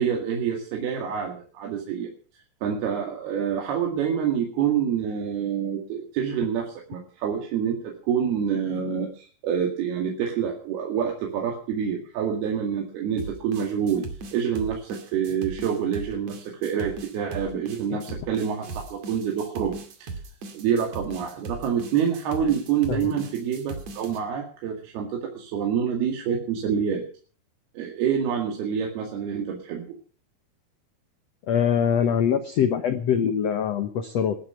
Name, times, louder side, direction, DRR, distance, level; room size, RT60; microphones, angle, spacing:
voice 1, 0.0-2.1 2.6-14.1 14.3-20.1 20.5-27.0 27.8-29.8, right 8 dB, 75° right, 1 dB, 4.0 m, -27 dB
sound 1, 13.2-24.2, right 3 dB, 50° right, 3.1 m, -38 dB
voice 2, 31.5-34.4, left 8 dB, 75° left, 9 dB, 1.5 m, -23 dB
20.0 x 11.5 x 5.7 m, 0.42 s
omnidirectional pair, 4.6 m